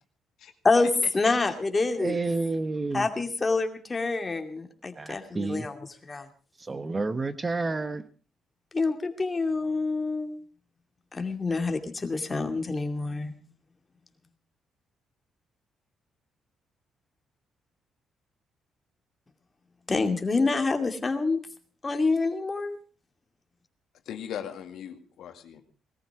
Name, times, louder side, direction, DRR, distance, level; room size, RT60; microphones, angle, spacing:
voice 1, 1.1-2.2 2.9-6.3 8.7-10.4 11.1-13.3 19.9-21.4 21.8-22.8, left 3 dB, 25° left, 6 dB, 2.5 m, -27 dB
voice 2, 2.0-3.0 5.0-5.7 6.7-8.0, right 3 dB, 25° right, 12 dB, 1.1 m, -29 dB
voice 3, 24.1-25.6, left 9 dB, 75° left, 6 dB, 2.1 m, -39 dB
19.0 x 14.0 x 4.9 m, 0.38 s
cardioid pair, 90°, 0 cm